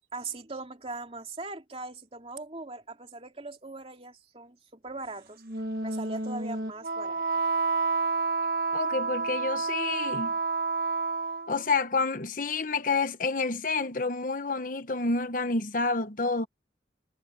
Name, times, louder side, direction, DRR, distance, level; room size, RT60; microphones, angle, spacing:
voice 1, 0.1-5.4 5.8-7.4, right 3 dB, 30° right, 2.7 m, -40 dB
Wind instrument woodwind instrument, 5.4-11.7, right 4 dB, 55° right, 1.3 m, -29 dB
voice 2, 8.7-10.3 11.5-16.5, left 3 dB, 50° left, 1.1 m, -29 dB
head